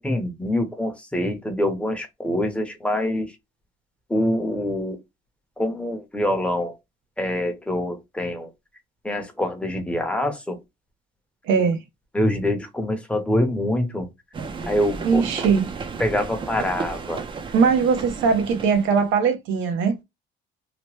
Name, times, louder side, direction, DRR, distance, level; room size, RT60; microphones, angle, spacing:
voice 1, 0.0-3.3 4.1-5.0 5.6-6.7 7.2-8.5 9.0-10.6 11.5-11.6 12.1-14.1 14.6-15.5 16.0-17.2, left 1 dB, 5° left, 0.7 m, -25 dB
voice 2, 11.5-11.8 15.0-15.7 17.5-20.0, right 5 dB, 90° right, 0.8 m, -20 dB
sound 1, 14.3-19.2, right 4 dB, 25° right, 0.5 m, -34 dB
2.9 x 2.1 x 3.1 m
cardioid pair, 130°, 19 cm